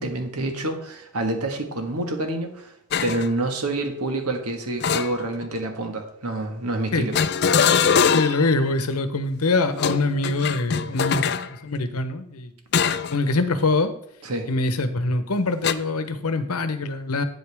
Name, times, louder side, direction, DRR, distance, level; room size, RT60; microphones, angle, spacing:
voice 1, 0.0-2.7 3.0-7.2 7.5-7.8 14.2-14.5, right 2 dB, 90° right, 4 dB, 1.6 m, -28 dB
sound 1, 2.9-3.3 4.8-5.6 7.1-8.5 9.7-11.5 12.7-13.2 13.6-13.8 15.6-15.7, left 6 dB, 50° left, 0.4 m, -22 dB
voice 2, 8.1-11.3 11.6-12.5 13.1-13.9 14.5-17.2, left 3 dB, 85° left, 11 dB, 0.9 m, -24 dB
9.0 x 8.1 x 3.5 m, 0.76 s
head